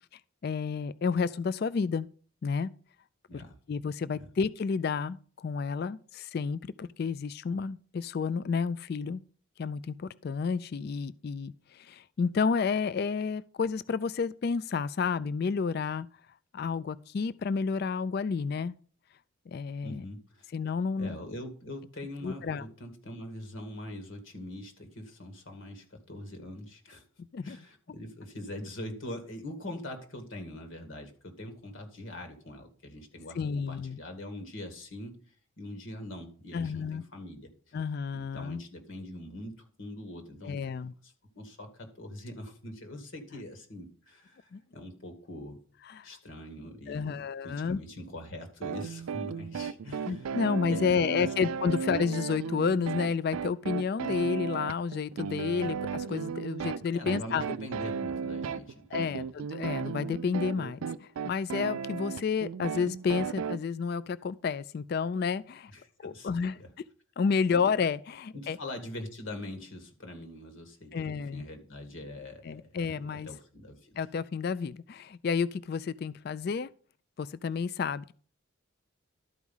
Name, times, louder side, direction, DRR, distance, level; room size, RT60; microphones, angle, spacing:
voice 1, 0.4-2.1 2.4-2.7 3.3-9.2 9.6-16.1 16.5-18.8 19.5-20.0 20.5-21.2 22.2-22.6 27.3-27.6 33.4-34.0 36.5-37.0 37.7-38.6 40.4-40.9 44.5-44.6 45.9-46.1 46.9-47.8 50.1-57.4 58.9-65.7 66.0-66.6 67.2-68.6 70.9-71.4 72.4-73.3 74.0-76.7 77.2-78.1, left 5 dB, 50° left, 0.3 m, -31 dB
voice 2, 19.8-20.5 21.0-27.0 27.4-35.2 35.6-37.5 38.1-40.6 41.0-45.6 46.0-50.4 50.7-51.3 51.7-51.8 56.9-59.3 65.7-66.7 68.3-74.0, left 1 dB, 65° left, 2.1 m, -43 dB
sound 1, 48.6-63.6, right 6 dB, 85° right, 0.4 m, -35 dB
12.5 x 4.8 x 5.5 m
head